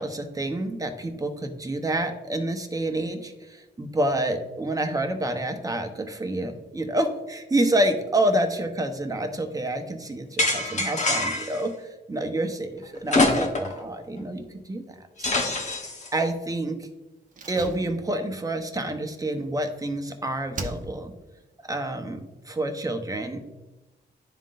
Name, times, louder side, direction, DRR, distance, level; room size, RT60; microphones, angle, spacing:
voice 1, 0.0-15.6 16.1-16.8 17.5-21.1 21.6-23.4, right 1 dB, 20° right, 5 dB, 0.9 m, -28 dB
sound 1, 10.4-11.6 13.1-13.8 14.2-14.3 15.2-16.1, left 2 dB, 40° left, 1.0 m, -24 dB
Slam, 17.3-20.1 20.5-21.3 21.5-21.6, right 2 dB, 45° right, 0.8 m, -39 dB
11.0 x 3.7 x 2.5 m, 1.1 s
cardioid pair, 85°, 18 cm